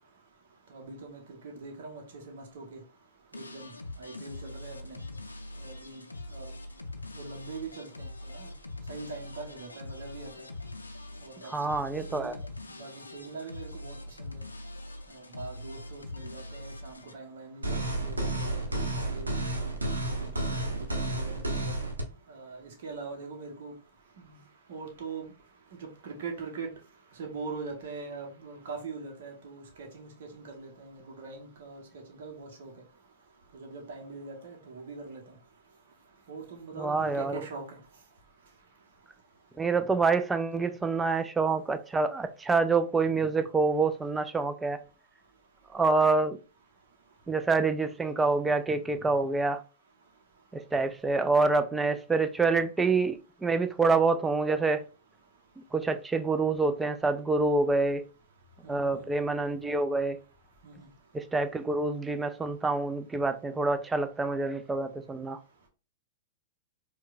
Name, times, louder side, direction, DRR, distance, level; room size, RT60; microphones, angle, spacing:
voice 1, 0.7-2.8 3.3-3.7 4.0-5.0 5.6-6.0 6.3-6.5 7.1-8.5 8.9-10.5 11.2-11.5 12.1-12.4 12.8-14.4 15.1-19.3 20.0-21.7 22.3-23.7 24.2-24.4 24.7-25.3 25.7-26.7 27.2-31.8 32.2-32.7 33.5-35.2 36.3-37.6 58.6-59.1 60.6-60.9, right 4 dB, 60° right, 0.9 m, -42 dB
sound 1, 3.3-17.1, left 2 dB, 90° left, 0.4 m, -43 dB
voice 2, 11.5-12.4 36.8-37.4 39.6-44.8 45.7-46.4 47.3-49.6 50.5-54.8 55.7-58.0 58.7-60.2 61.1-65.4, right 3 dB, 10° right, 0.4 m, -27 dB
sound 2, 17.6-22.0, right 2 dB, 85° right, 0.8 m, -31 dB
4.5 x 2.2 x 2.4 m
figure-of-eight pair, 100°, 0 cm